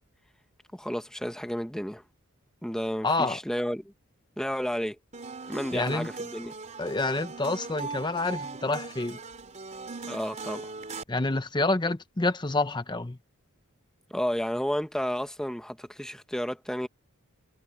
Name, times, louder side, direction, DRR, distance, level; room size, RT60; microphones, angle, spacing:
voice 1, 0.7-2.0 2.6-3.9 4.4-5.0 5.5-6.5 10.1-10.7 14.1-16.9, equal, 5° left, 1.1 m, -31 dB
voice 2, 3.0-3.4 5.7-6.1 6.8-9.2 11.1-13.2, left 2 dB, 20° left, 0.8 m, -28 dB
sound 1, 5.1-11.0, right 4 dB, 30° right, 3.9 m, -40 dB
head